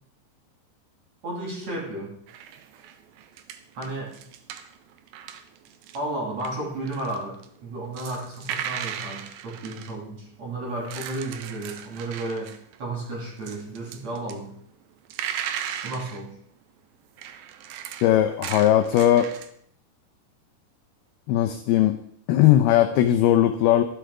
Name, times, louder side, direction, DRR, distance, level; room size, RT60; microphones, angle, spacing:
voice 1, 1.2-2.1 3.8-4.1 5.9-12.5 12.8-14.5 15.8-16.3, right 2 dB, 40° right, -1 dB, 3.6 m, -33 dB
sound 1, 2.3-6.0 6.3-9.9 10.7-13.0 13.3-14.4 14.8-16.2 17.2-19.5, right 9 dB, 90° right, 2.0 m, -37 dB
voice 2, 18.0-19.3 21.3-22.0 22.3-23.8, left 12 dB, 85° left, 7 dB, 2.2 m, -19 dB
13.0 x 11.5 x 4.9 m, 0.65 s
omnidirectional pair, 5.3 m